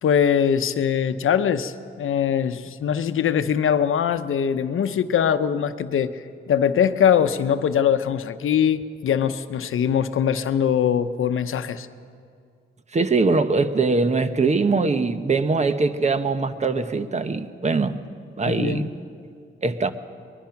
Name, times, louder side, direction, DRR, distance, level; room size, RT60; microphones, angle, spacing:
voice 1, 0.0-11.9 18.5-18.9, left 8 dB, 80° left, 11 dB, 0.9 m, -22 dB
voice 2, 12.9-18.0 18.4-18.9 19.6-19.9, right 3 dB, 35° right, 10 dB, 1.0 m, -22 dB
22.5 x 21.0 x 5.9 m, 2.3 s
wide cardioid pair, 135°, 21 cm